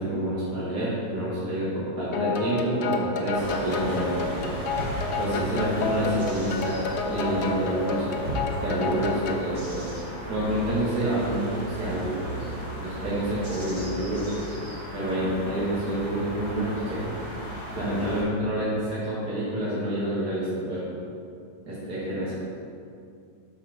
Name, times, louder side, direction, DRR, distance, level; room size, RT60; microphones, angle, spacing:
voice 1, 0.0-4.5 5.2-8.2 8.6-9.9 10.3-12.5 12.8-14.3 14.9-17.1 17.7-20.9 21.7-22.3, right 1 dB, 65° right, -10 dB, 2.4 m, -28 dB
sound 1, 2.1-9.5, left 3 dB, 75° left, 0.6 m, -30 dB
sound 2, 3.3-18.2, equal, 25° right, 1.6 m, -36 dB
5.4 x 5.1 x 6.4 m, 2.4 s
omnidirectional pair, 2.0 m